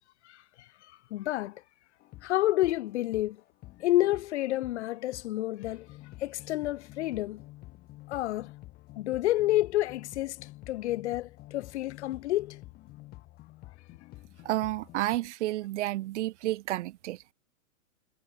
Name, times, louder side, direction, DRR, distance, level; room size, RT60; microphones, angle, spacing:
voice 1, 0.2-1.6 2.2-3.4 3.8-5.9 6.2-7.4 8.1-8.5 9.0-12.6, left 15 dB, 55° left, 0.5 m, -29 dB
sound 1, 2.0-15.2, left 18 dB, 20° left, 0.9 m, -50 dB
voice 2, 14.4-17.3, right 16 dB, 55° right, 0.7 m, -31 dB
hypercardioid pair, 145°, 43 cm